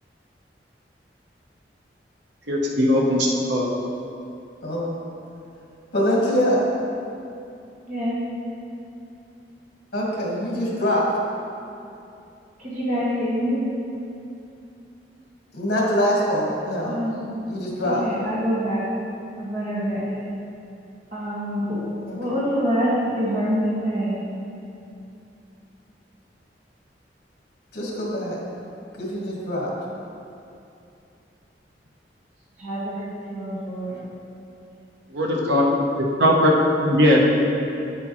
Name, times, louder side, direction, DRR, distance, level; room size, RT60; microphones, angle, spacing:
voice 1, 2.5-3.7 35.1-35.6 36.2-37.2, left 1 dB, 80° right, -2 dB, 0.9 m, -19 dB
voice 2, 4.6-5.0 5.9-6.6 9.9-11.0 15.5-16.9 17.5-18.0 22.1-22.2 27.7-28.4 29.0-29.7, equal, 60° left, -4 dB, 1.7 m, -23 dB
voice 3, 7.9-8.2 12.6-13.6 16.9-17.2 17.8-18.9 19.4-20.3 21.1-21.8 22.2-24.2 32.6-34.0, equal, 45° right, -8 dB, 1.8 m, -26 dB
8.6 x 7.8 x 3.1 m, 2.7 s
head